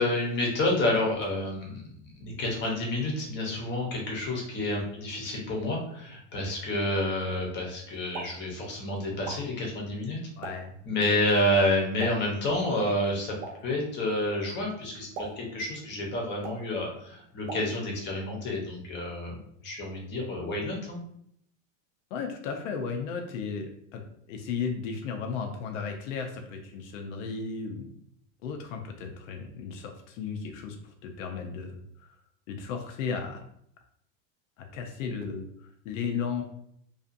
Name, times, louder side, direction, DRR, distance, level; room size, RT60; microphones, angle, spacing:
voice 1, 0.0-1.8 2.1-10.2 10.8-13.4 13.6-21.0, left 1 dB, 25° left, -1 dB, 0.7 m, -29 dB
Explosion, 7.9-18.2, right 4 dB, 55° right, 0.8 m, -46 dB
voice 2, 10.4-10.7 22.1-24.0 24.3-27.9 28.4-32.1 32.5-33.4 34.6-36.4, left 5 dB, 75° left, 4 dB, 0.6 m, -35 dB
2.6 x 2.4 x 2.5 m, 0.70 s
supercardioid pair, 140°, 39 cm